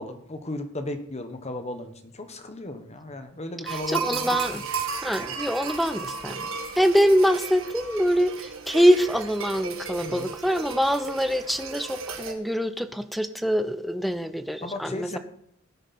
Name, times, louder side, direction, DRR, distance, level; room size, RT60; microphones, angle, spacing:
voice 1, 0.0-4.7 5.2-5.4 10.0-10.3 14.6-15.2, left 1 dB, 30° left, 8 dB, 1.3 m, -35 dB
voice 2, 3.6-4.6 5.0-6.5 6.8-15.2, equal, ahead, 10 dB, 0.7 m, -24 dB
sound 1, 3.7-12.3, right 5 dB, 65° right, 2.0 m, -34 dB
18.0 x 9.8 x 4.3 m, 0.73 s
head